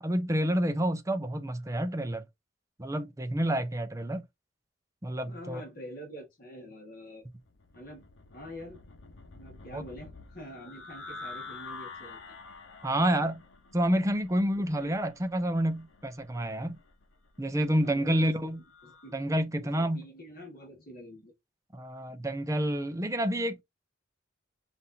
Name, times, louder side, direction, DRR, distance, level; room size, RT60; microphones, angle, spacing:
voice 1, 0.0-2.2 2.8-4.2 5.0-5.6 9.7-9.8 12.8-13.4 13.7-16.8 17.4-18.6 19.1-20.0 21.7-23.6, right 1 dB, 15° right, 0.6 m, -29 dB
voice 2, 5.3-7.2 7.7-8.0 8.3-8.8 9.4-12.4 14.6-15.0 17.8-18.3 18.8-19.2 19.8-21.3, equal, 45° left, 1.6 m, -46 dB
sound 1, 7.3-19.2, left 3 dB, 70° left, 0.9 m, -49 dB
5.6 x 2.7 x 2.7 m
head